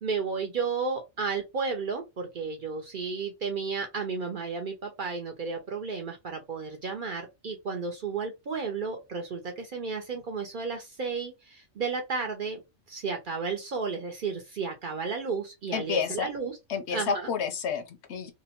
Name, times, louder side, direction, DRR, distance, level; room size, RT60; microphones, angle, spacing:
voice 1, 0.0-12.6 12.9-16.6 16.9-17.3, right 5 dB, 55° right, 0.6 m, -33 dB
voice 2, 15.7-16.3 16.7-18.3, left 6 dB, 70° left, 0.8 m, -30 dB
2.7 x 2.0 x 2.8 m
omnidirectional pair, 1.3 m